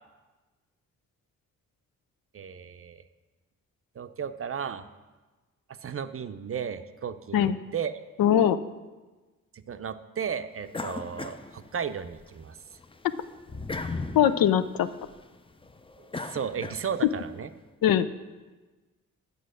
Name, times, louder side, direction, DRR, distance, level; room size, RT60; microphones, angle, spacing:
voice 1, 2.3-3.0 3.9-4.9 5.7-8.0 9.5-12.6 16.2-17.5, right 7 dB, 40° right, 11 dB, 0.5 m, -34 dB
voice 2, 8.2-8.6 14.1-14.9 17.8-18.1, left 10 dB, 75° left, 13 dB, 0.5 m, -21 dB
sound 1, 10.7-12.3 12.7-17.2, left 3 dB, 15° left, 0.5 m, -38 dB
8.3 x 4.9 x 6.4 m, 1.2 s
supercardioid pair, 45°, 35 cm